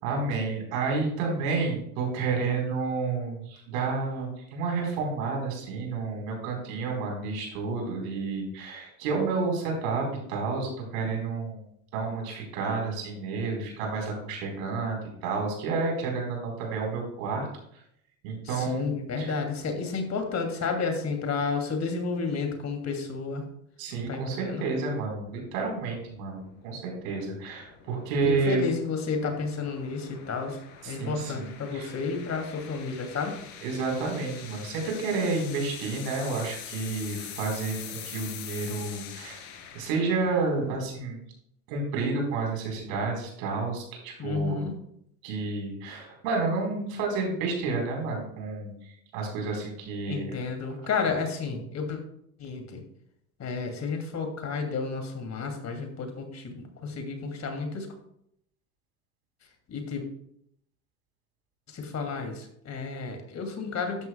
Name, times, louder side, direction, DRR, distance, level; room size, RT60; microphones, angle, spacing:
voice 1, 0.0-11.6 11.9-17.5 18.2-18.9 19.2-19.4 23.8-28.6 30.8-31.9 33.6-39.4 39.7-41.2 41.7-44.6 45.2-50.3, right 4 dB, 75° right, 1 dB, 4.4 m, -30 dB
voice 2, 18.4-23.4 24.1-24.7 28.3-30.6 30.8-33.4 44.2-44.7 50.1-52.0 52.4-52.8 53.4-57.9 59.7-60.0 61.7-64.1, left 4 dB, 40° left, 4 dB, 2.7 m, -31 dB
sound 1, 25.1-41.0, left 9 dB, 70° left, 2.5 m, -45 dB
12.5 x 10.5 x 2.3 m, 0.73 s
hypercardioid pair, 75°, 40 cm